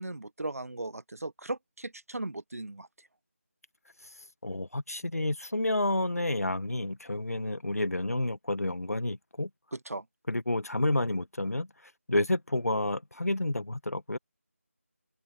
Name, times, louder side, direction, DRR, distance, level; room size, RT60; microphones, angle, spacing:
voice 1, 0.0-3.1 9.7-10.1, right 2 dB, 75° right, 1.2 m, -37 dB
voice 2, 4.4-9.5 10.3-14.2, left 1 dB, 80° left, 1.7 m, -30 dB
open air
figure-of-eight pair, 170°, 8 cm